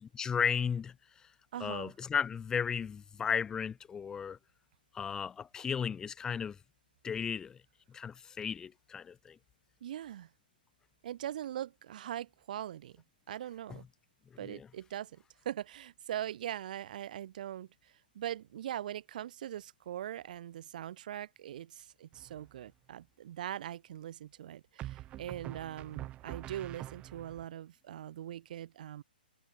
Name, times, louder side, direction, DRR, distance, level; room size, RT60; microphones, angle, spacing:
voice 1, 0.1-0.9 1.6-4.4 4.9-6.6 7.0-7.6 7.9-9.4 13.7-13.8 14.4-14.7, left 7 dB, 10° left, 1.0 m, -34 dB
voice 2, 1.5-1.9 9.8-10.3 11.0-13.0 13.3-13.8 14.4-29.0, right 11 dB, 55° right, 3.3 m, -41 dB
sound 1, 22.1-22.7 24.8-27.4, right 14 dB, 20° right, 1.2 m, -45 dB
hypercardioid pair, 140°, 5 cm